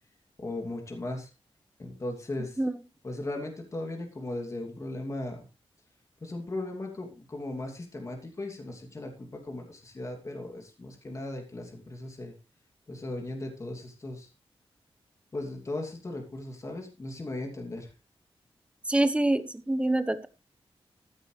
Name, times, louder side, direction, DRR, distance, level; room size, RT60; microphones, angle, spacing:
voice 1, 0.4-1.3 1.8-2.6 3.0-5.4 6.2-12.3 12.9-14.3 15.3-17.9, left 2 dB, 30° left, 2 dB, 2.8 m, -37 dB
voice 2, 18.8-20.3, right 1 dB, 10° right, 12 dB, 1.2 m, -26 dB
14.0 x 11.5 x 3.3 m, 0.29 s
wide cardioid pair, 155°, 10 cm